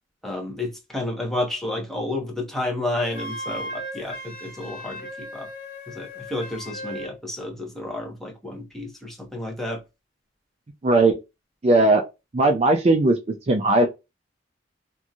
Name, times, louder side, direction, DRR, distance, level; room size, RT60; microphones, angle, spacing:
voice 1, 0.2-5.5 5.9-9.8, left 1 dB, ahead, 0.9 m, -31 dB
Wind instrument woodwind instrument, 3.0-7.2, equal, 50° left, 1.4 m, -36 dB
voice 2, 10.8-11.2 11.6-12.0 12.3-13.2 13.5-13.9, right 2 dB, 35° right, 0.4 m, -18 dB
3.0 x 2.6 x 2.3 m
head